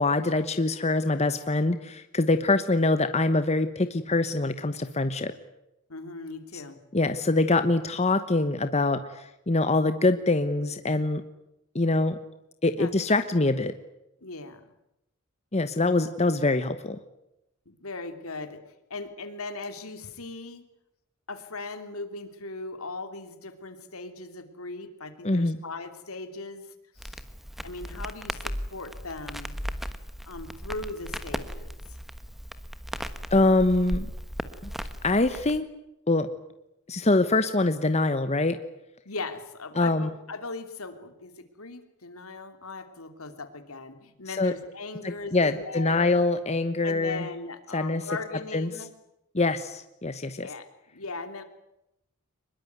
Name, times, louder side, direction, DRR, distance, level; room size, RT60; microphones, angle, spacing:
voice 1, 0.0-5.3 6.9-11.2 11.7-12.2 12.6-13.7 15.5-17.0 25.2-25.6 33.3-34.1 34.6-34.7 35.0-35.7 36.1-36.3 36.9-38.6 39.8-40.1 44.4-44.5 45.0-47.3 47.7-48.0 48.5-48.7 49.3-50.5, left 2 dB, 30° left, 10 dB, 1.1 m, -24 dB
voice 2, 5.9-6.8 12.7-13.2 14.2-14.7 17.7-18.6 18.9-20.6 21.3-27.2 27.6-29.6 30.2-32.0 39.0-46.1 46.8-48.9 50.4-51.4, left 3 dB, 75° left, 8 dB, 3.0 m, -39 dB
Crackle, 27.0-35.6, equal, ahead, 1.2 m, -37 dB
24.0 x 21.5 x 9.4 m, 0.86 s
head